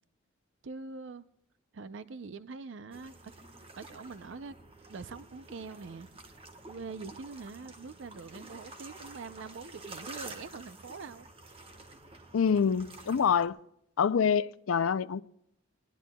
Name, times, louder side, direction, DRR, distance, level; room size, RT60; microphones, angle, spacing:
voice 1, 0.6-1.2 1.7-3.3 3.8-4.5 4.9-6.1 6.7-11.3, right 4 dB, 65° right, 0.5 m, -44 dB
sound 1, 2.9-13.5, right 2 dB, 25° right, 1.3 m, -49 dB
voice 2, 12.3-13.6 14.0-15.2, left 7 dB, 85° left, 0.4 m, -26 dB
21.5 x 19.5 x 2.3 m
head